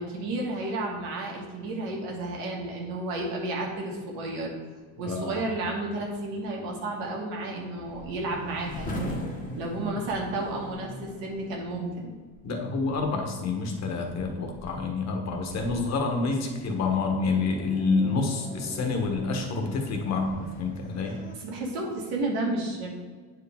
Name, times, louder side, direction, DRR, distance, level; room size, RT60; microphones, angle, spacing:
voice 1, 0.0-4.5 5.0-9.2 9.5-12.2 21.4-22.9, right 2 dB, 85° right, -1 dB, 1.9 m, -32 dB
sound 1, 4.6-21.4, equal, 25° left, 1.2 m, -43 dB
voice 2, 5.0-5.4 12.4-21.2, left 4 dB, 50° left, 3 dB, 1.4 m, -28 dB
8.6 x 4.8 x 3.6 m, 1.4 s
cardioid pair, 120°, 35 cm